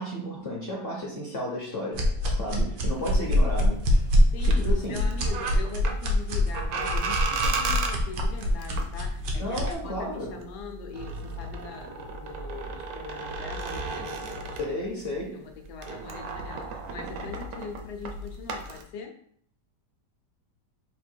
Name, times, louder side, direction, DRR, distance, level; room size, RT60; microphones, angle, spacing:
voice 1, 0.0-3.9 4.4-5.1 9.3-10.4 14.6-15.4, left 1 dB, 45° left, -2 dB, 0.8 m, -33 dB
sound 1, 1.9-9.7, left 1 dB, 85° right, 1.4 m, -24 dB
sound 2, 2.9-15.2 15.5-18.8, right 3 dB, 65° right, 1.0 m, -35 dB
voice 2, 4.3-14.6 15.3-19.2, left 5 dB, 75° left, 4 dB, 1.3 m, -42 dB
4.2 x 2.6 x 4.4 m, 0.64 s
omnidirectional pair, 1.8 m